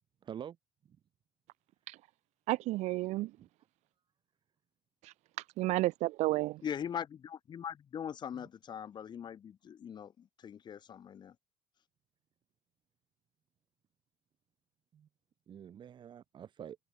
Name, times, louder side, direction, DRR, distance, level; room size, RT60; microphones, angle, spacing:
voice 1, 0.2-0.6 3.4-3.5 8.3-8.5 14.9-15.1 15.5-16.8, right 9 dB, 40° right, 3.2 m, -46 dB
voice 2, 2.5-3.3 5.0-5.1 5.6-6.6, right 18 dB, 70° right, 1.5 m, -31 dB
voice 3, 6.6-11.3, left 8 dB, 35° left, 2.5 m, -41 dB
cardioid pair, 130°, 12 cm